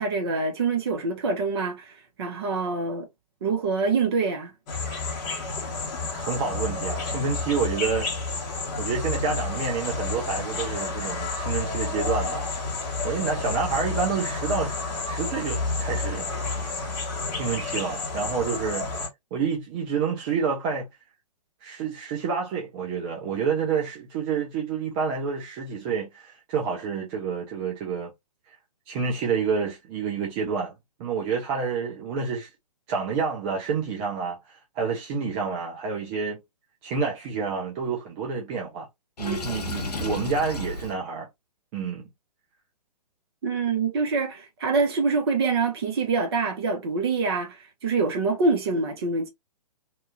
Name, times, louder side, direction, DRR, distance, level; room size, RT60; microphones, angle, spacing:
voice 1, 0.0-3.1 3.4-4.5 43.4-49.3, right 4 dB, 40° right, 0.9 m, -25 dB
sound 1, 4.7-19.1, left 3 dB, 25° left, 0.9 m, -30 dB
voice 2, 6.1-8.3 8.8-12.5 13.0-14.7 15.1-16.3 17.3-18.9 19.3-20.9 21.6-28.1 28.9-30.7 31.0-32.5 32.9-36.4 36.8-38.9 39.2-41.3 41.7-42.0, right 5 dB, 15° right, 0.4 m, -28 dB
Water / Sink (filling or washing), 39.2-40.9, left 2 dB, 75° left, 0.6 m, -32 dB
2.8 x 2.3 x 2.3 m
figure-of-eight pair, 125°, 21 cm